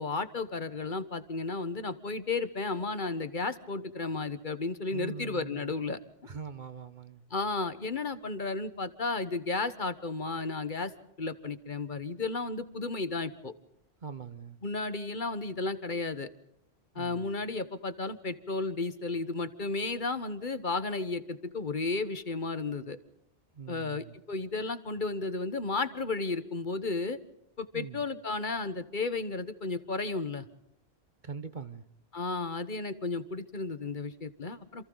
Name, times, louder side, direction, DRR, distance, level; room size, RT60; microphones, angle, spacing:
voice 1, 0.0-6.0 7.3-10.9 11.2-13.5 14.6-16.3 16.9-23.0 23.7-27.2 27.6-30.5 32.1-34.9, left 3 dB, 50° left, 1.4 m, -33 dB
voice 2, 4.9-5.7 6.2-7.2 14.0-14.6 16.9-17.3 23.5-24.1 27.7-28.0 31.2-31.8, right 6 dB, 50° right, 1.2 m, -42 dB
28.0 x 28.0 x 4.0 m
omnidirectional pair, 1.1 m